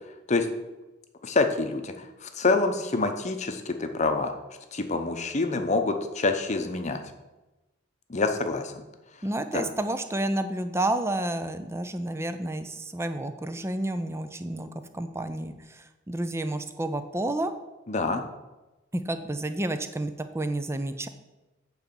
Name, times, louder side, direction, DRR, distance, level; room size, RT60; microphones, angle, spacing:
voice 1, 1.2-4.3 4.7-7.0 8.1-8.8 9.5-9.7 17.9-18.2, left 3 dB, 35° left, 6 dB, 0.8 m, -26 dB
voice 2, 9.2-17.5 18.9-21.1, right 1 dB, 15° right, 9 dB, 0.5 m, -30 dB
8.2 x 4.1 x 6.9 m, 1.1 s
head